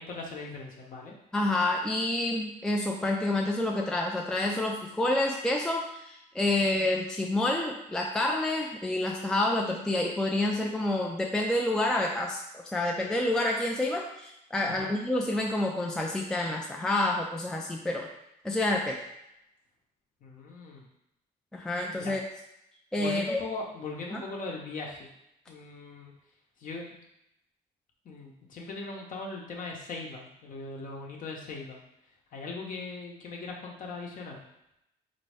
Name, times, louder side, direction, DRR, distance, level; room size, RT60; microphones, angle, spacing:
voice 1, 0.0-1.1 14.7-14.9 20.2-20.9 21.9-22.2 23.0-25.1 25.5-26.1 26.6-27.0 28.0-31.8 32.3-34.4, left 3 dB, 55° left, -1 dB, 0.9 m, -39 dB
voice 2, 1.3-18.1 18.4-19.0 21.5-22.2 22.9-23.4 24.1-24.2, left 1 dB, 5° left, 0 dB, 0.4 m, -28 dB
4.0 x 2.6 x 3.4 m, 0.83 s
cardioid pair, 110°, 17 cm